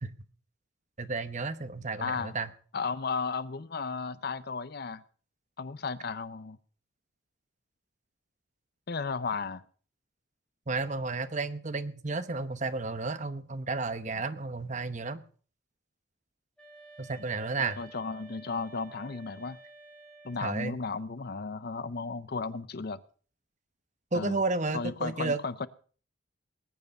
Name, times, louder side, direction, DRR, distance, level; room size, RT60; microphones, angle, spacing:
voice 1, 1.0-2.5 10.7-15.2 17.0-17.8 20.4-20.8 24.1-25.4, right 3 dB, 35° right, 12 dB, 0.9 m, -32 dB
voice 2, 2.0-2.4 2.7-5.0 5.6-6.6 8.9-9.6 17.6-19.6 20.2-23.0 24.1-24.4 24.7-25.7, left 4 dB, 50° left, 16 dB, 0.6 m, -34 dB
sound 1, 16.6-20.7, right 2 dB, 5° left, 3.2 m, -52 dB
20.0 x 9.5 x 5.3 m, 0.43 s
head